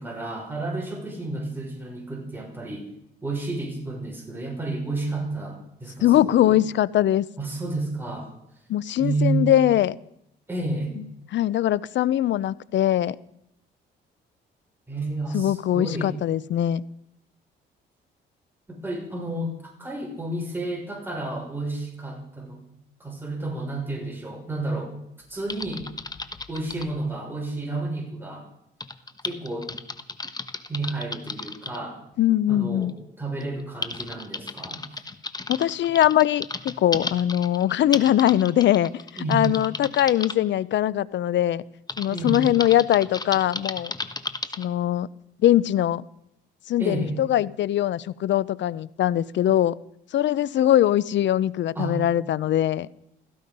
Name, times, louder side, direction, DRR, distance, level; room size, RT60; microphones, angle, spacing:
voice 1, 0.0-2.8 3.2-6.6 7.4-8.3 9.0-9.4 10.5-10.9 14.9-16.1 18.7-22.6 23.0-24.9 25.3-25.8 26.5-28.5 29.2-29.7 30.7-32.0 32.5-34.8 39.2-39.5 42.1-42.4 46.8-47.2 51.7-52.0, right 2 dB, 10° right, -1 dB, 6.4 m, -31 dB
voice 2, 6.0-7.2 8.7-10.0 11.0-11.1 11.3-13.2 15.3-16.8 32.2-32.9 35.5-38.9 39.3-41.6 42.0-43.9 44.6-45.1 45.4-46.0 46.7-49.7 50.1-52.9, left 12 dB, 65° left, 20 dB, 0.7 m, -21 dB
Typing, 25.5-26.9 28.8-31.8 32.8-32.9 33.4-40.3 41.9-44.7, left 3 dB, 20° left, 1.2 m, -34 dB
17.0 x 15.5 x 5.4 m, 0.78 s
cardioid pair, 90°, 20 cm